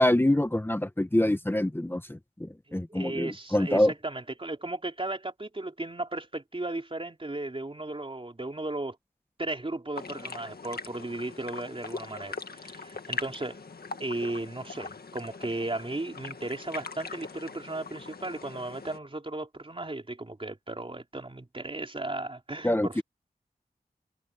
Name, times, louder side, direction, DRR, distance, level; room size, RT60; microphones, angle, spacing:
voice 1, 0.0-3.9 22.6-23.0, left 1 dB, 15° left, 1.2 m, -25 dB
voice 2, 2.7-9.0 9.4-13.6 14.0-23.0, right 2 dB, 35° right, 3.6 m, -35 dB
sound 1, 10.0-19.0, left 4 dB, 75° left, 1.9 m, -41 dB
wide cardioid pair, 65°, 16 cm